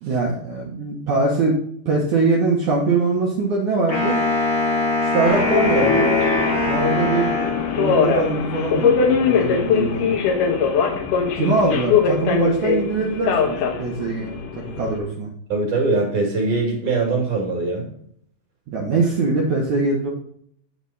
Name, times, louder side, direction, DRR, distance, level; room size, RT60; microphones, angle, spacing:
voice 1, 0.0-1.6 1.8-4.2 5.0-6.1 6.6-7.4 7.7-10.1 11.3-15.3 18.7-20.1, right 3 dB, 85° right, -2 dB, 1.6 m, -22 dB
Wind instrument woodwind instrument, 3.9-8.1, left 2 dB, 55° left, 0.7 m, -22 dB
Subway metro underground, 5.3-15.0, left 6 dB, 90° left, 1.8 m, -21 dB
voice 2, 15.5-17.9, right 3 dB, 50° right, 0 dB, 2.8 m, -22 dB
8.5 x 7.0 x 4.1 m, 0.68 s
omnidirectional pair, 5.5 m